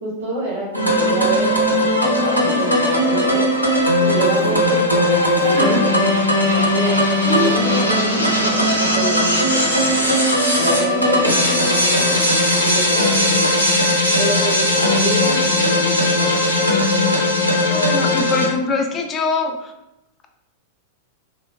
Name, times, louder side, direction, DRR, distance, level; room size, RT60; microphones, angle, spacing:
voice 1, 0.0-3.5 4.0-6.0 6.3-10.1 10.5-13.7 14.1-16.4, right 1 dB, 80° right, -5 dB, 0.8 m, -27 dB
sound 1, 0.7-18.5, left 1 dB, 90° left, 0.5 m, -18 dB
sound 2, 2.4-2.6 3.3-4.5 5.2-5.9 6.9-7.0 7.2-7.7, equal, 50° right, 0.6 m, -26 dB
voice 2, 17.7-19.6, left 4 dB, 25° left, 4 dB, 0.3 m, -22 dB
3.0 x 2.0 x 2.4 m, 0.90 s
figure-of-eight pair, 95°, 0 cm